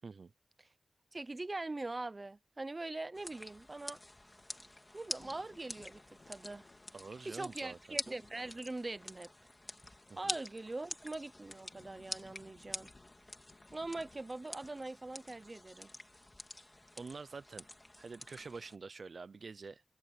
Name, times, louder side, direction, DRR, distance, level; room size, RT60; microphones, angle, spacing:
voice 1, 1.1-4.0 4.9-6.7 7.2-9.3 10.2-12.9 13.7-15.9, right 2 dB, 25° right, 0.9 m, -42 dB
sound 1, 3.1-18.8, left 1 dB, 15° left, 2.2 m, -47 dB
Thunder / Rain, 4.3-15.6, left 3 dB, 40° left, 2.2 m, -65 dB
voice 2, 6.9-8.0 10.1-10.3 17.0-17.7 18.0-19.8, right 4 dB, 55° right, 0.5 m, -47 dB
wide cardioid pair, 130°, 0 cm